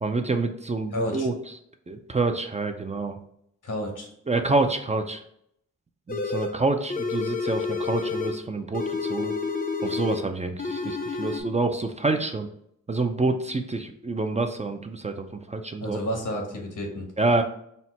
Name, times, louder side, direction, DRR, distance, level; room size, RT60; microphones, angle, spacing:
voice 1, 0.0-1.3 1.9-3.2 4.3-5.2 6.1-9.3 9.8-12.5 12.9-16.0 17.2-17.4, right 3 dB, 25° right, 6 dB, 0.4 m, -27 dB
voice 2, 0.9-1.3 3.6-4.1 15.8-17.1, equal, 80° left, 1 dB, 1.2 m, -30 dB
sound 1, 6.1-6.6 6.9-8.4 8.7-10.3 10.6-11.4, left 4 dB, 30° left, 0.5 m, -29 dB
4.2 x 2.1 x 4.2 m, 0.71 s
cardioid pair, 65°, 30 cm